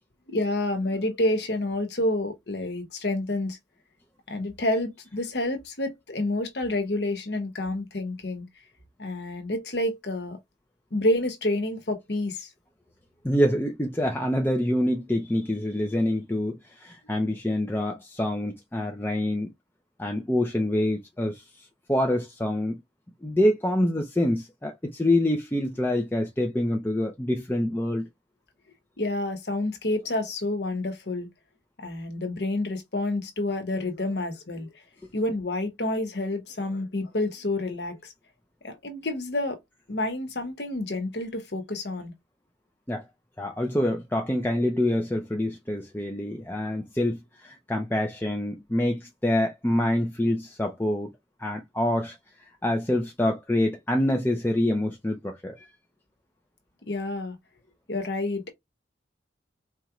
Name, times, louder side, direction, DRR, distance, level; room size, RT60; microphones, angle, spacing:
voice 1, 0.3-3.6 4.3-8.5 9.0-10.4 10.9-12.5 29.0-31.3 31.8-34.7 35.1-38.1 38.6-39.6 39.9-42.1 56.9-57.4 57.9-58.5, left 1 dB, 65° left, 1.1 m, -29 dB
voice 2, 13.2-19.5 20.0-21.5 21.9-22.8 23.2-28.1 42.9-43.0 43.4-51.1 51.4-52.2 52.6-55.7, left 1 dB, 10° left, 0.5 m, -26 dB
4.4 x 3.0 x 2.4 m
head